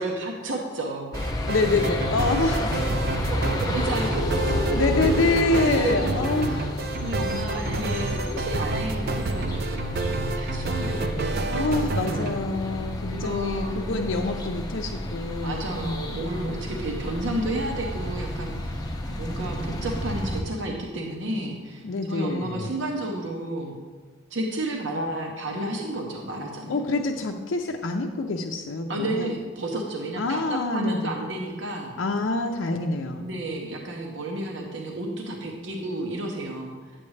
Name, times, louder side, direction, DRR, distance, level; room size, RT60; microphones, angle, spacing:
voice 1, 0.0-1.5 3.3-5.1 5.6-6.1 7.0-12.2 13.1-13.7 15.4-18.8 19.2-23.7 24.3-27.0 28.9-31.9 33.2-36.7, right 1 dB, 65° right, 0 dB, 0.9 m, -31 dB
sound 1, 1.1-20.4, left 1 dB, 20° left, 0.7 m, -30 dB
sound 2, 1.1-12.4, right 3 dB, 50° right, 0.5 m, -30 dB
voice 2, 1.4-2.7 4.7-6.7 11.5-16.6 21.8-22.7 26.7-29.3 30.2-31.0 32.0-33.3, left 2 dB, 70° left, 2 dB, 0.5 m, -26 dB
9.7 x 7.7 x 3.2 m, 1.4 s
head